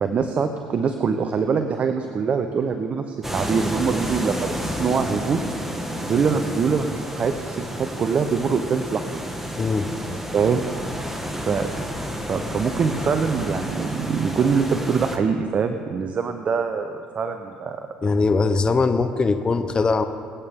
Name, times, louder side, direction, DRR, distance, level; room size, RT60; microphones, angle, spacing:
voice 1, 0.0-5.4 6.1-9.2 10.1-10.6 11.4-11.7 12.3-17.9, right 6 dB, 45° right, 7 dB, 0.9 m, -24 dB
sound 1, 3.2-15.2, equal, 10° right, 1.7 m, -30 dB
voice 2, 9.6-9.9 18.0-20.0, left 4 dB, 30° left, 8 dB, 0.8 m, -21 dB
25.0 x 8.7 x 3.8 m, 2.2 s
supercardioid pair, 75°, 3 cm